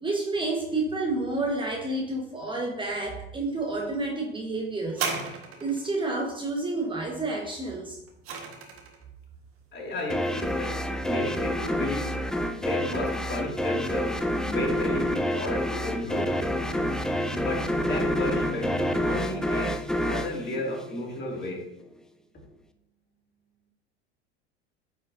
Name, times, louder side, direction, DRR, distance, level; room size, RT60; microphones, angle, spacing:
voice 1, 0.0-5.1 5.6-8.0, right 2 dB, 15° right, -1 dB, 1.2 m, -29 dB
sound 1, 4.9-6.0 7.7-9.0 9.8-9.9, right 5 dB, 40° right, 1.5 m, -34 dB
voice 2, 9.7-16.4 17.3-21.7, left 2 dB, 30° left, -1 dB, 2.3 m, -33 dB
sound 2, 10.1-21.4, equal, ahead, 0.4 m, -28 dB
Bowed string instrument, 15.9-20.8, left 1 dB, 85° left, 2.4 m, -40 dB
9.2 x 5.0 x 2.7 m, 0.89 s
hypercardioid pair, 80°, 33 cm